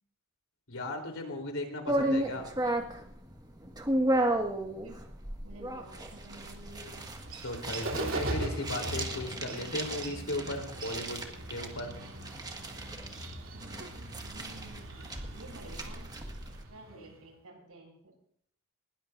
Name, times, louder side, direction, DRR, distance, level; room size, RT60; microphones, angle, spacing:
voice 1, 0.7-2.5 7.4-11.2 11.5-11.9 17.0-17.1, left 1 dB, 65° left, 3 dB, 3.7 m, -36 dB
sound 1, 1.9-16.6, right 1 dB, 20° right, 1.8 m, -34 dB
voice 2, 5.4-7.1 13.4-14.9 15.3-16.1 16.7-18.1, right 1 dB, 85° right, 1 dB, 7.8 m, -51 dB
Bird, 5.8-17.2, right 1 dB, 65° right, 3.3 m, -41 dB
20.0 x 19.0 x 2.7 m, 0.64 s
head